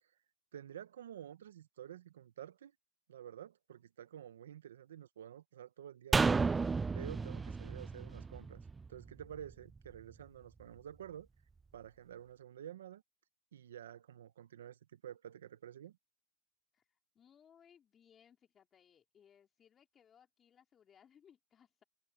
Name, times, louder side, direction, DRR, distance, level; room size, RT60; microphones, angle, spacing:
voice 1, 0.5-2.7 3.1-6.5 6.9-8.6 8.9-11.3 11.7-13.0 13.5-16.0, right 10 dB, 85° right, 1.0 m, -50 dB
sound 1, 6.1-9.5 9.8-9.9, right 4 dB, 15° right, 0.4 m, -33 dB
voice 2, 16.7-21.8, left 8 dB, 30° left, 4.5 m, -66 dB
hypercardioid pair, 105°, 0 cm